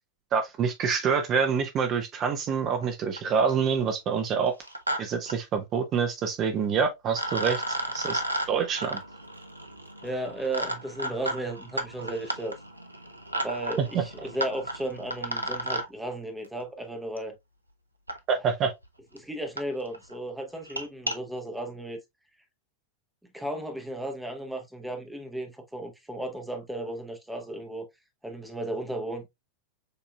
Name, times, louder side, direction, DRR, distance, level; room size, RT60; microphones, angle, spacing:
voice 1, 0.3-4.5 5.0-7.6 7.9-8.2 8.5-9.0 13.8-14.0 18.3-18.7, right 6 dB, 30° right, 0.8 m, -26 dB
sound 1, 2.8-2.9 3.2-3.6 4.5-5.0 5.3-5.4 6.6-6.7 7.1-15.9 17.2-17.3 18.1-18.2 18.8-18.9 19.2-19.3 19.6-19.7 19.9-20.1 20.6-21.2, right 1 dB, 85° right, 0.6 m, -33 dB
voice 2, 10.0-12.6 13.4-17.3 19.1-22.0 23.3-27.9 28.2-29.3, right 1 dB, 5° right, 0.9 m, -35 dB
6.7 x 2.8 x 2.2 m
figure-of-eight pair, 90°, 0 cm